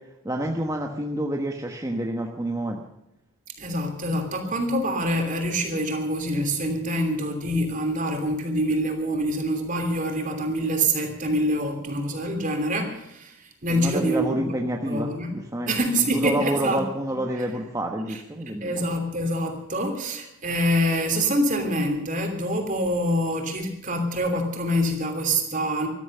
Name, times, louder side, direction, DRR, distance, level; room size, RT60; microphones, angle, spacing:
voice 1, 0.2-2.8 13.7-15.7 16.0-18.8, right 1 dB, 15° right, 1 dB, 1.2 m, -28 dB
voice 2, 3.6-13.4 13.6-14.6 14.8-17.4 18.1-25.9, equal, 35° right, 5 dB, 3.0 m, -26 dB
14.0 x 13.5 x 6.7 m, 0.84 s
head